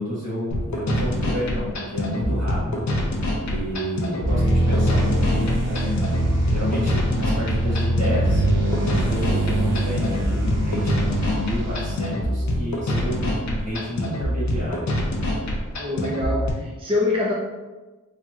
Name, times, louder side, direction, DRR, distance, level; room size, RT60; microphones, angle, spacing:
voice 1, 0.0-2.8 3.4-6.0 6.4-14.9, left 1 dB, 55° right, -8 dB, 1.4 m, -29 dB
sound 1, 0.5-16.5, left 1 dB, 65° left, 0.5 m, -25 dB
sound 2, 4.2-12.2, right 1 dB, 90° right, 0.9 m, -24 dB
voice 2, 15.8-17.3, left 2 dB, 20° right, -4 dB, 0.4 m, -24 dB
3.3 x 2.7 x 2.2 m, 1.2 s
wide cardioid pair, 110°, 31 cm